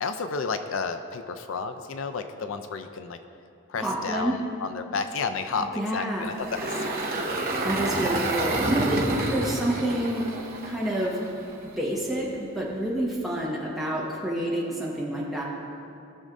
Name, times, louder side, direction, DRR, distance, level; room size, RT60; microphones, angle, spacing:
voice 1, 0.0-3.2 3.7-7.4, left 4 dB, 65° left, 8 dB, 0.4 m, -32 dB
voice 2, 3.8-4.3 5.6-6.3 7.6-9.0 9.3-10.3 10.6-11.2 11.8-15.4, right 1 dB, ahead, -6 dB, 1.3 m, -28 dB
Engine, 6.2-11.5, right 2 dB, 40° right, 0.9 m, -28 dB
17.0 x 6.3 x 2.6 m, 2.7 s
head